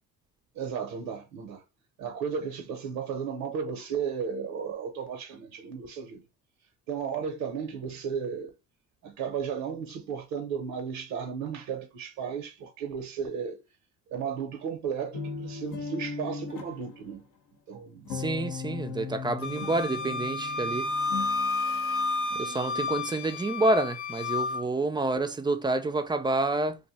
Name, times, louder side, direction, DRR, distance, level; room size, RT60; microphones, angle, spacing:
voice 1, 0.5-1.6 2.0-6.2 6.9-8.5 9.0-13.6 14.1-17.2 17.7-18.1, right 6 dB, 80° right, 0.7 m, -34 dB
sound 1, 15.1-17.1 18.1-22.9, left 5 dB, 70° left, 0.8 m, -38 dB
voice 2, 18.1-20.9 22.4-26.8, right 2 dB, 15° right, 0.4 m, -28 dB
Wind instrument woodwind instrument, 19.4-24.6, left 3 dB, 40° left, 0.5 m, -31 dB
2.6 x 2.1 x 3.9 m
cardioid pair, 90°, 33 cm